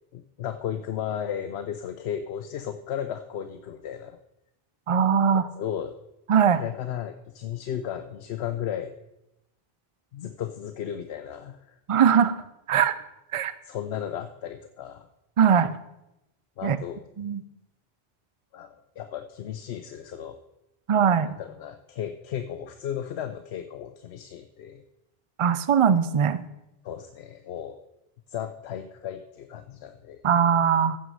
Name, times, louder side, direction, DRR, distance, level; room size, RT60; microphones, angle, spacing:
voice 1, 0.1-4.2 5.3-5.9 6.5-8.9 10.1-11.8 13.6-15.1 16.6-17.0 18.5-20.4 21.2-24.8 26.8-27.8 28.3-30.2, left 9 dB, 90° left, 9 dB, 0.9 m, -35 dB
voice 2, 4.9-5.4 6.3-6.6 11.9-12.4 12.7-13.0 13.3-13.5 15.4-15.7 16.6-16.8 17.2-17.4 20.9-21.3 25.4-26.4 30.2-31.0, right 7 dB, 45° right, 14 dB, 0.4 m, -20 dB
15.0 x 6.0 x 5.5 m, 0.90 s
omnidirectional pair, 1.1 m